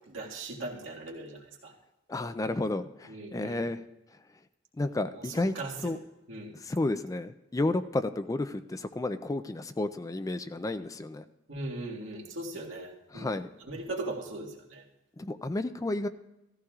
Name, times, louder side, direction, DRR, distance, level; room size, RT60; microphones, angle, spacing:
voice 1, 0.1-1.7 3.1-3.6 5.6-5.7 6.3-6.5 11.5-13.4 13.7-14.8, right 2 dB, 75° right, -2 dB, 1.9 m, -39 dB
voice 2, 2.1-3.8 4.8-5.5 5.8-6.0 6.5-11.2 13.1-13.5 15.2-16.1, left 2 dB, 15° left, 11 dB, 0.3 m, -31 dB
16.5 x 14.0 x 2.4 m, 0.90 s
head